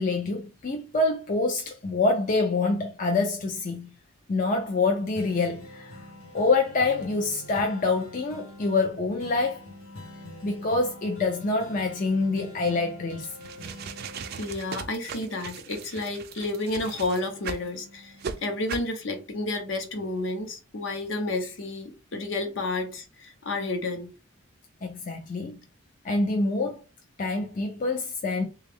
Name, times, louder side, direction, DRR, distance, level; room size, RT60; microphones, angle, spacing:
voice 1, 0.0-3.9 4.3-6.0 6.3-9.7 10.4-13.3 24.8-25.6 26.0-26.8 27.2-28.4, left 3 dB, 40° left, 0.4 m, -26 dB
sound 1, 5.1-16.8 17.1-19.0 19.5-19.6, left 1 dB, 90° left, 1.3 m, -46 dB
sound 2, 13.3-17.7 18.2-18.4 18.7-18.9, right 6 dB, 50° right, 0.4 m, -38 dB
voice 2, 14.4-24.1, left 2 dB, 65° left, 0.8 m, -31 dB
3.3 x 2.3 x 3.5 m
head